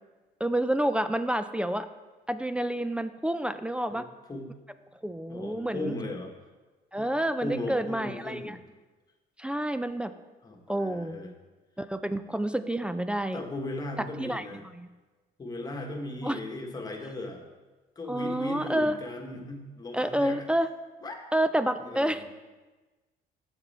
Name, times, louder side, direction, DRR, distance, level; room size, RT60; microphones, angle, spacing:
voice 1, 0.4-1.9 2.3-4.1 5.0-5.9 6.9-8.6 9.4-10.1 10.7-11.2 11.8-13.4 14.0-14.9 16.2-16.4 18.1-19.0 19.9-20.7 21.3-22.2, right 1 dB, 5° right, 11 dB, 0.3 m, -29 dB
voice 2, 5.3-6.3 7.0-7.1 7.4-8.6 10.4-11.3 13.3-14.6 15.4-17.4 18.0-20.4 21.0-21.2 21.8-22.2, left 2 dB, 20° left, 3 dB, 1.3 m, -37 dB
7.5 x 6.7 x 4.2 m, 1.2 s
cardioid pair, 110°, 17 cm